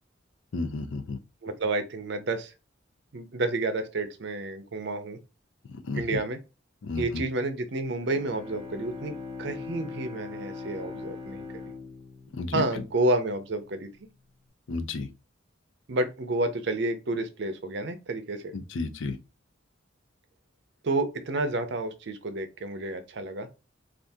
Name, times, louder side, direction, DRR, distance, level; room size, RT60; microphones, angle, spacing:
voice 1, 0.5-1.2 5.7-6.2 6.8-7.2 12.3-12.8 14.7-15.1 18.5-19.2, left 3 dB, 75° left, 0.5 m, -32 dB
voice 2, 1.4-2.5 3.1-5.2 5.9-6.4 7.0-9.1 9.4-11.5 12.5-13.9 15.9-18.6 20.8-23.5, right 2 dB, 60° right, 0.5 m, -30 dB
Bowed string instrument, 7.9-13.5, left 4 dB, ahead, 1.3 m, -41 dB
2.6 x 2.4 x 3.5 m
head